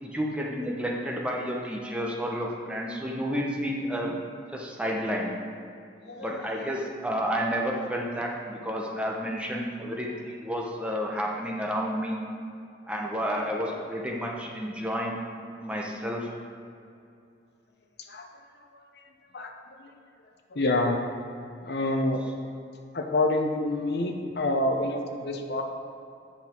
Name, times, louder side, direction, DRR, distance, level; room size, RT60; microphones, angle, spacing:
voice 1, 0.0-4.1 4.5-5.3 6.2-12.2 12.9-15.2 15.6-16.3, equal, 5° right, -1 dB, 0.8 m, -30 dB
voice 2, 6.0-6.4 18.1-18.3 18.7-19.0 19.3-19.5 19.8-19.9 20.5-21.0 21.6-22.3 22.9-25.6, left 2 dB, 60° left, 4 dB, 0.7 m, -27 dB
8.7 x 5.6 x 4.5 m, 2.5 s
head